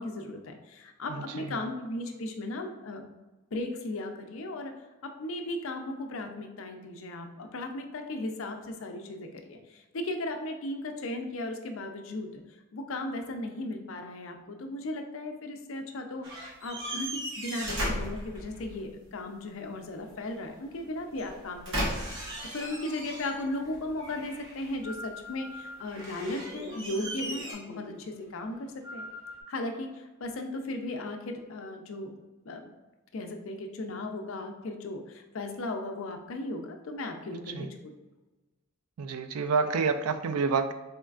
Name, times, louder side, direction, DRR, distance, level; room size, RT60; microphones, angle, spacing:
voice 1, 0.0-3.0 3.5-12.4 12.7-29.1 29.5-32.1 32.5-32.7 33.1-37.9, left 2 dB, 65° left, 5 dB, 0.5 m, -36 dB
sound 1, 16.2-18.9 21.1-23.6 24.0-24.9 25.8-27.5, equal, 60° right, 1.2 m, -36 dB
sound 2, 19.9-29.4, left 1 dB, 15° right, 0.6 m, -46 dB
voice 2, 39.0-40.7, right 5 dB, 85° right, 9 dB, 0.4 m, -28 dB
4.2 x 3.1 x 2.4 m, 1.1 s
head